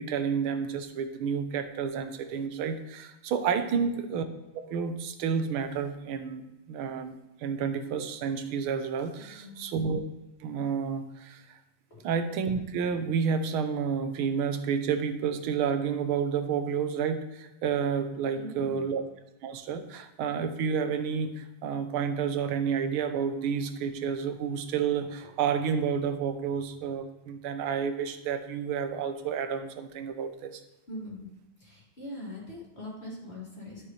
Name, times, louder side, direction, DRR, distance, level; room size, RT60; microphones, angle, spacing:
voice 1, 0.0-4.2 4.5-6.4 6.7-7.1 7.4-10.0 10.4-11.4 12.0-19.0 19.4-30.6, right 6 dB, 85° right, 9 dB, 1.6 m, -30 dB
voice 2, 3.7-4.0 9.2-9.8 11.9-12.0 18.3-18.9 30.9-31.3 31.6-33.9, left 1 dB, 30° left, -6 dB, 2.9 m, -42 dB
13.0 x 5.4 x 3.2 m, 0.98 s
omnidirectional pair, 2.3 m